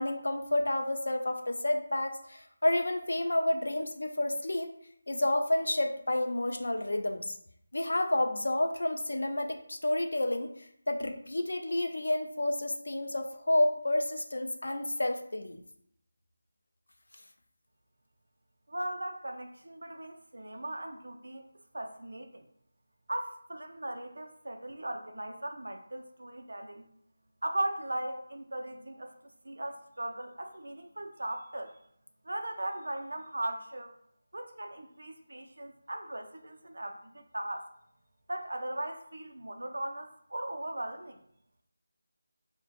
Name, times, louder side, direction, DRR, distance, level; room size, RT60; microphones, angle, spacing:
voice 1, 0.0-4.7 5.1-7.4 7.7-15.6, left 1 dB, 70° left, 5 dB, 0.4 m, -30 dB
voice 2, 18.7-21.5 21.7-22.5 23.1-26.9 27.4-29.1 29.4-31.8 32.2-34.0 34.3-37.7 38.3-41.2, right 1 dB, 80° right, 5 dB, 0.4 m, -38 dB
2.8 x 2.1 x 2.8 m, 0.69 s
figure-of-eight pair, 175°, 0 cm